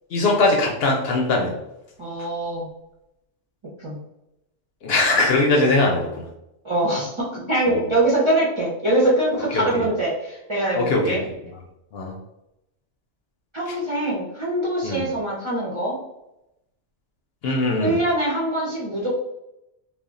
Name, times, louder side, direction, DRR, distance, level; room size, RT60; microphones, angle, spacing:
voice 1, 0.1-1.5 4.8-6.2 7.7-7.8 9.5-9.8 10.7-11.2 11.9-12.1 14.8-15.1 17.4-18.0, left 2 dB, 65° left, 1 dB, 0.7 m, -20 dB
voice 2, 2.0-2.7 3.8-4.0 6.6-11.2 13.5-16.0 17.8-19.2, right 1 dB, 35° right, -6 dB, 0.5 m, -23 dB
2.3 x 2.1 x 3.6 m, 0.88 s
omnidirectional pair, 1.2 m